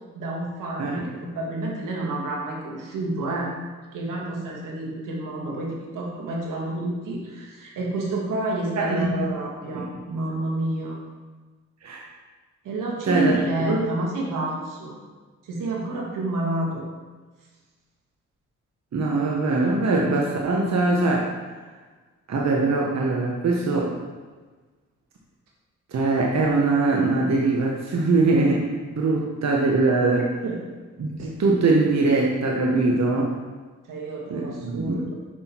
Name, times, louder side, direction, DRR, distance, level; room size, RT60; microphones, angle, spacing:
voice 1, 0.2-3.5 3.9-11.0 12.6-15.0 15.4-16.9 30.2-30.6 33.9-35.1, right 2 dB, 80° right, -2 dB, 1.8 m, -29 dB
voice 2, 8.8-9.1 9.7-9.8 11.8-12.0 13.0-13.3 13.7-13.8 18.9-21.3 22.3-23.9 25.9-30.3 31.0-33.4 34.3-35.0, right 3 dB, 55° right, -2 dB, 1.2 m, -22 dB
6.3 x 6.0 x 4.5 m, 1.3 s
cardioid pair, 55°, 31 cm